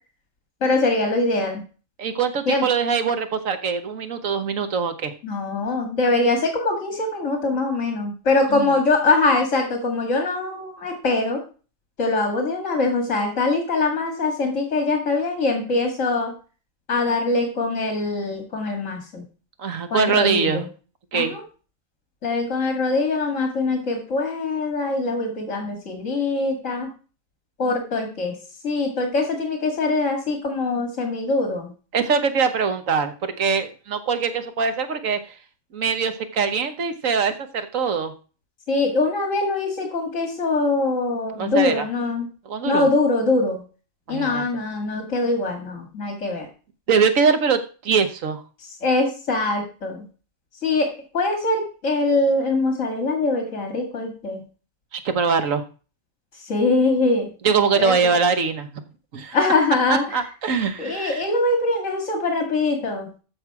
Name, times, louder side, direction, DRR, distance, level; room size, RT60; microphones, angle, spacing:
voice 1, 0.6-1.6 2.5-2.6 5.2-11.4 12.0-16.3 16.9-19.2 19.9-20.7 21.1-21.4 22.2-26.9 27.6-28.4 28.6-31.7 38.7-42.3 42.6-43.6 44.1-46.5 48.6-50.0 50.6-54.4 56.3-57.3 57.8-58.0 59.3-60.2 60.8-63.2, left 3 dB, 70° left, 3 dB, 2.3 m, -23 dB
voice 2, 2.0-5.1 8.5-8.7 19.6-20.6 21.1-21.4 31.9-35.3 35.7-38.1 41.4-41.8 42.4-42.9 44.1-44.4 46.9-48.4 54.9-55.6 57.4-58.7 59.1-59.4 59.9-61.2, right 5 dB, 80° right, 9 dB, 1.5 m, -22 dB
14.0 x 5.6 x 4.7 m, 0.36 s
omnidirectional pair, 1.4 m